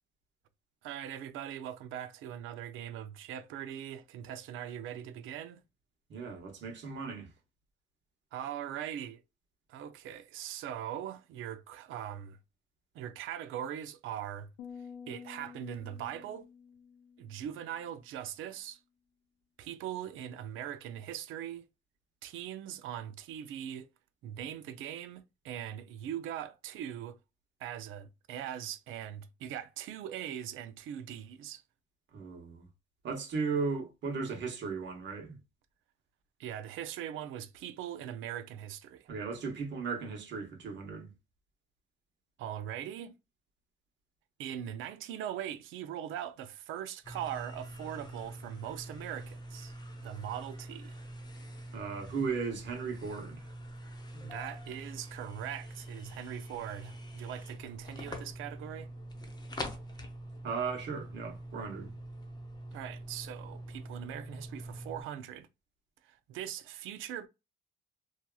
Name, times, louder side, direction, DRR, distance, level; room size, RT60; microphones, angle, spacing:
voice 1, 0.8-5.6 8.3-9.2 9.7-12.4 12.9-14.5 15.1-16.5 17.2-18.8 19.6-21.6 22.2-23.9 24.2-27.2 27.6-31.6 36.4-39.1 42.4-43.1 44.4-49.8 50.0-51.0 54.2-58.9 62.7-65.5 66.0-67.3, right 10 dB, 85° right, 0.5 m, -41 dB
voice 2, 6.1-7.3 32.1-32.6 33.0-35.4 39.1-41.1 51.7-53.4 60.4-61.9, right 5 dB, 65° right, 1.1 m, -36 dB
sound 1, 14.6-18.0, left 6 dB, 75° left, 0.6 m, -50 dB
sound 2, 47.0-65.0, equal, 20° left, 0.7 m, -45 dB
2.8 x 2.4 x 2.3 m
cardioid pair, 90°, 20 cm